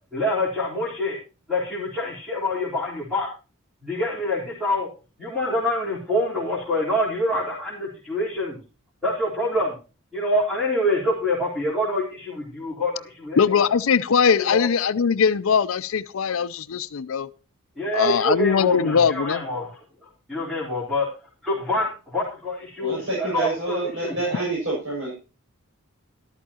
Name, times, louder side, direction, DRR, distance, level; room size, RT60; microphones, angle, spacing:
voice 1, 0.1-1.2 1.5-3.3 3.8-4.9 5.2-8.6 9.0-9.7 10.1-13.7 14.4-14.7 17.8-19.8 20.3-21.1 21.4-24.2, left 1 dB, 5° right, -6 dB, 3.8 m, -26 dB
voice 2, 13.4-17.3 17.9-19.5, left 6 dB, 70° left, 14 dB, 0.5 m, -21 dB
voice 3, 22.8-25.1, right 2 dB, 65° right, -4 dB, 6.6 m, -27 dB
13.5 x 12.0 x 2.9 m, 0.32 s
head